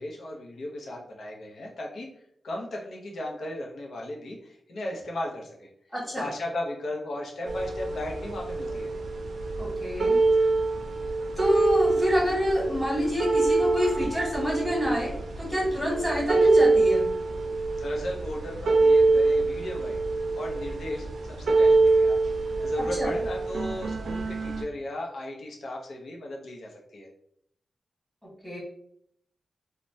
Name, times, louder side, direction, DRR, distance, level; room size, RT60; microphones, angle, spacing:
voice 1, 0.0-2.1 2.4-5.7 6.2-8.9 17.8-20.0 20.4-22.2 22.4-27.1, left 1 dB, 70° left, -1 dB, 0.6 m, -36 dB
voice 2, 5.9-6.3 9.6-10.2 11.4-17.1 23.0-23.1 28.4-28.6, equal, 5° left, -6 dB, 1.5 m, -27 dB
sound 1, 7.5-24.6, right 3 dB, 85° right, 0.4 m, -25 dB
3.1 x 2.1 x 2.6 m, 0.71 s
wide cardioid pair, 130°, 0 cm